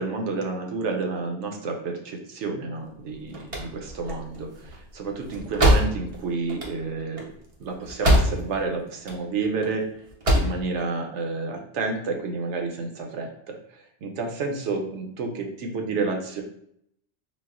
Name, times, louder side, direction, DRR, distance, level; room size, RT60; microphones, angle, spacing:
voice 1, 0.0-7.3 7.6-9.9 10.3-16.4, right 4 dB, 75° right, 3 dB, 0.9 m, -30 dB
sound 1, 3.1-8.7 8.9-9.7 10.0-10.6, equal, 50° right, 0.4 m, -23 dB
4.0 x 2.1 x 2.4 m, 0.69 s
omnidirectional pair, 1.2 m